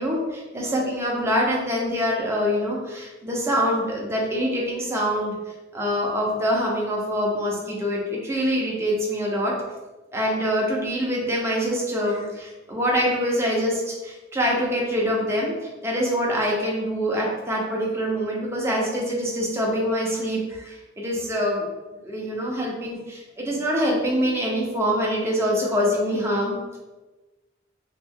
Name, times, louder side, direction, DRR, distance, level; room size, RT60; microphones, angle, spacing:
voice 1, 0.0-5.4 5.7-9.5 10.1-15.5 15.8-21.7 22.0-26.8, equal, 15° right, -3 dB, 0.7 m, -25 dB
3.0 x 2.5 x 3.7 m, 1.2 s
head